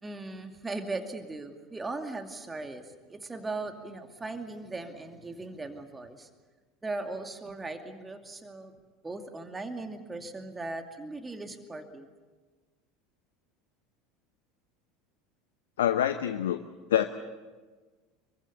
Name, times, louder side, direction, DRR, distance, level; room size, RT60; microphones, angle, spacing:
voice 1, 0.0-6.3 6.8-8.7 9.0-12.1, right 2 dB, 15° right, 5 dB, 2.5 m, -38 dB
voice 2, 15.8-16.6 16.9-17.1, left 10 dB, 70° left, 9 dB, 0.9 m, -25 dB
26.0 x 23.5 x 7.0 m, 1.3 s
figure-of-eight pair, 75°, 0 cm